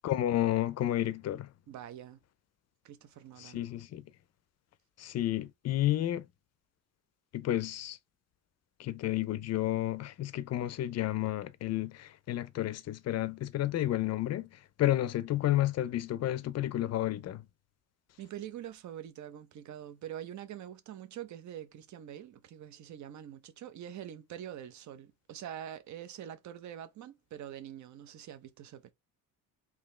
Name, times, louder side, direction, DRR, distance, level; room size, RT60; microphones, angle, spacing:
voice 1, 0.0-1.5 3.4-4.0 5.0-6.2 7.3-8.0 8.8-14.5 14.8-17.4, left 13 dB, 45° left, 0.5 m, -31 dB
voice 2, 1.7-2.2 2.8-3.6 18.2-28.9, right 10 dB, 50° right, 0.8 m, -45 dB
3.7 x 2.8 x 3.2 m
cardioid pair, 145°, 36 cm